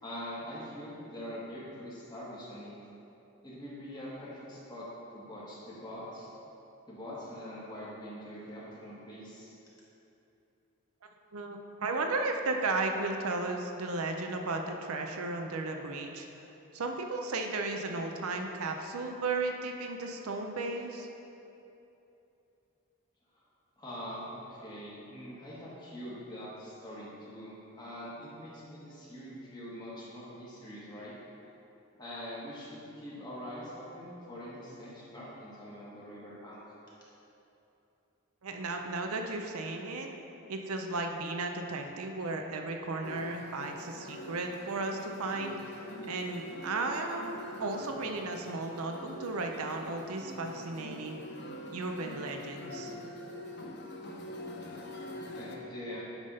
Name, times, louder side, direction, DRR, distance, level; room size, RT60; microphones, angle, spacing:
voice 1, 0.0-2.7 3.4-4.9 5.1-6.3 6.9-9.5 23.8-31.1 31.9-36.6 55.2-56.1, equal, 20° left, -8 dB, 1.5 m, -43 dB
voice 2, 11.3-16.3 16.7-21.1 38.4-40.1 40.5-51.2 51.7-52.9, right 3 dB, 85° right, 3 dB, 0.6 m, -35 dB
sound 1, 43.0-55.6, left 1 dB, 50° left, 0.6 m, -44 dB
8.9 x 3.6 x 5.4 m, 2.9 s
head